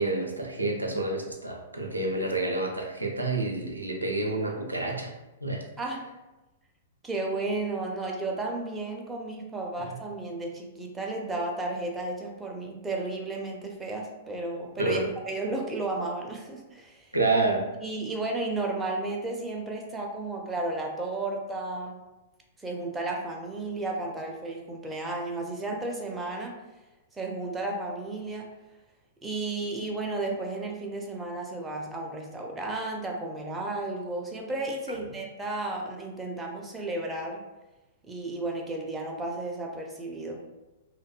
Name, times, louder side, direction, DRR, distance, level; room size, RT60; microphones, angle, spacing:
voice 1, 0.0-5.1 5.4-5.6 9.9-10.0 14.8-15.0 17.1-17.7 34.9-35.0, right 2 dB, 85° right, 0 dB, 0.4 m, -28 dB
voice 2, 5.8-6.1 7.0-17.1 17.8-22.0 22.6-26.6 27.1-28.5 29.2-37.4 38.0-40.4, right 2 dB, 10° right, 0 dB, 0.4 m, -33 dB
2.6 x 2.1 x 2.3 m, 1.1 s
figure-of-eight pair, 105°, 0 cm